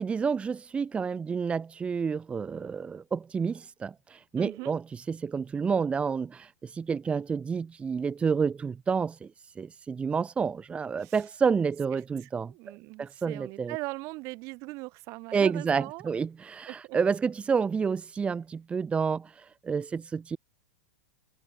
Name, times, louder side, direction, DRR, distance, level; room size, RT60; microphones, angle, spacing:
voice 1, 0.0-12.5 13.0-13.7 15.3-20.4, right 5 dB, 15° right, 1.1 m, -29 dB
voice 2, 4.4-4.7 11.0-11.2 11.9-16.2 16.7-17.0, right 25 dB, 45° right, 3.0 m, -40 dB
hypercardioid pair, 105°, 7 cm